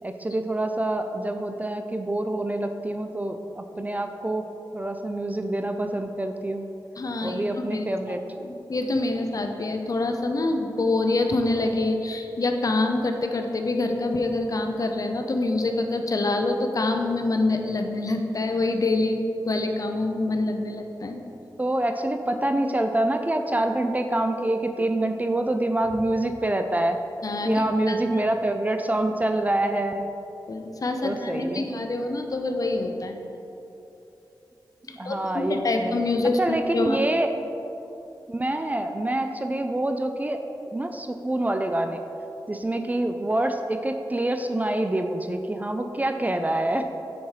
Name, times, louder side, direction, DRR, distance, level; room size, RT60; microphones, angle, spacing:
voice 1, 0.0-6.7 7.2-8.2 21.6-27.0 27.4-30.1 31.0-31.7 34.9-35.9 36.4-37.3 38.3-40.4 40.7-42.0 42.5-46.9, right 1 dB, 20° right, 6 dB, 0.4 m, -26 dB
voice 2, 7.0-21.2 27.2-28.2 30.5-33.2 34.9-37.0, left 2 dB, 45° left, 4 dB, 0.7 m, -26 dB
9.3 x 4.3 x 4.9 m, 2.9 s
wide cardioid pair, 85°, 8 cm